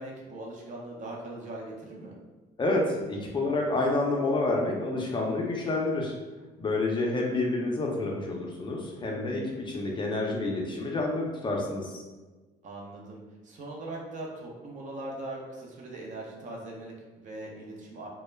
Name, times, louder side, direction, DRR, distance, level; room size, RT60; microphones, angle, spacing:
voice 1, 0.0-2.2 8.8-9.3 12.6-18.1, right 2 dB, 50° right, -1 dB, 0.6 m, -41 dB
voice 2, 2.6-6.2 6.6-12.0, left 2 dB, 30° left, -1 dB, 0.5 m, -28 dB
2.2 x 2.0 x 3.2 m, 1.2 s
cardioid pair, 110°, 17 cm